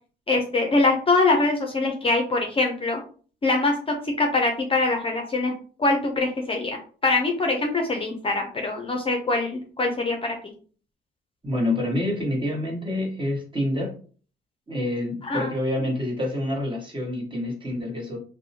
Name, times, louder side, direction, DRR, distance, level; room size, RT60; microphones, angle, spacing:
voice 1, 0.3-3.0 3.4-5.5 5.8-10.5 15.2-15.5, left 3 dB, 25° left, 3 dB, 0.6 m, -23 dB
voice 2, 11.4-13.9 14.7-18.2, left 1 dB, 25° right, -1 dB, 1.2 m, -27 dB
2.6 x 2.1 x 2.8 m, 0.41 s
cardioid pair, 75°, 20 cm